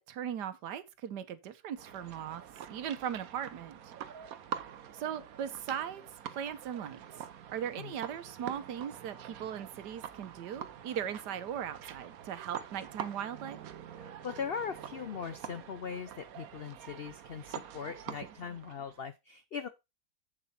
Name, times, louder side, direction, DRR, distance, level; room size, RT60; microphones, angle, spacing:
voice 1, 0.0-2.4 2.7-3.9 4.9-6.0 6.3-7.0 7.5-13.6, right 9 dB, 80° right, 1.5 m, -38 dB
sound 1, 1.8-19.0, right 9 dB, 65° right, 1.2 m, -46 dB
voice 2, 13.9-19.7, left 6 dB, 75° left, 0.5 m, -40 dB
7.8 x 7.2 x 4.2 m
omnidirectional pair, 1.8 m